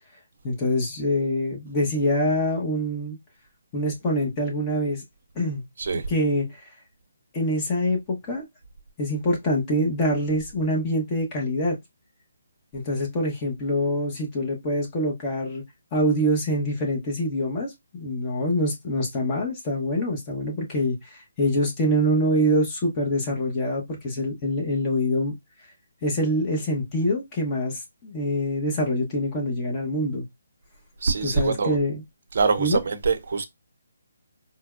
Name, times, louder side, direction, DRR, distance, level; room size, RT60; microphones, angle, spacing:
voice 1, 0.4-3.2 3.7-5.0 5.3-5.6 5.9-6.6 7.3-8.4 9.0-11.8 12.7-15.6 15.9-25.3 26.0-30.2 31.2-32.0 32.6-32.8, equal, 25° left, 1.1 m, -25 dB
voice 2, 31.0-31.8 32.3-33.4, right 4 dB, 55° right, 0.7 m, -24 dB
4.3 x 2.2 x 2.5 m
hypercardioid pair, 155°, 0 cm